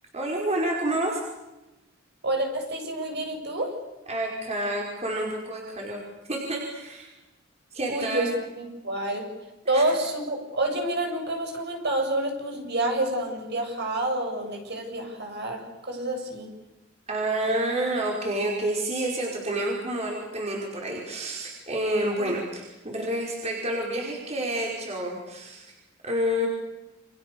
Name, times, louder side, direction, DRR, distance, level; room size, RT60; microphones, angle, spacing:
voice 1, 0.1-1.2 4.1-6.0 6.3-7.1 7.7-8.3 9.7-9.8 17.1-25.7 26.0-26.5, right 1 dB, 35° right, -1 dB, 5.3 m, -29 dB
voice 2, 2.2-3.8 7.9-9.3 9.7-16.5 22.2-22.3, right 1 dB, 55° right, 3 dB, 7.7 m, -28 dB
29.5 x 26.5 x 7.0 m, 1.0 s
head